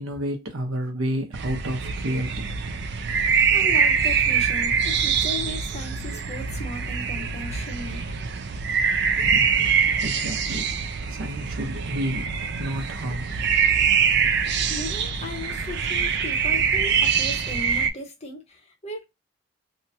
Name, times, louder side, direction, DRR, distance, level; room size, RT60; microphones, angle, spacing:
voice 1, 0.0-2.5 9.2-10.7 11.1-13.5 14.3-14.5, equal, 80° right, 0.9 m, -31 dB
sound 1, 1.3-17.9, right 6 dB, 50° right, 0.3 m, -24 dB
voice 2, 3.5-8.0 14.7-19.0, left 2 dB, 30° left, 0.7 m, -36 dB
3.0 x 2.1 x 2.7 m
head